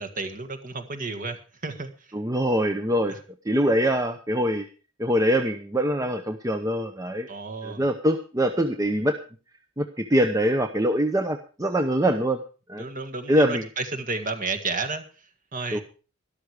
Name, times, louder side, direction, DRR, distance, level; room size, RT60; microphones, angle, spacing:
voice 1, 0.0-1.9 7.3-7.8 12.8-15.0 15.5-15.8, right 3 dB, 40° right, 6 dB, 1.7 m, -32 dB
voice 2, 2.1-3.1 3.4-4.7 5.0-7.3 7.6-9.2 9.8-12.4 12.7-12.9 13.3-13.7 15.7-15.8, equal, 15° right, 6 dB, 0.8 m, -23 dB
13.0 x 12.0 x 4.9 m, 0.36 s
head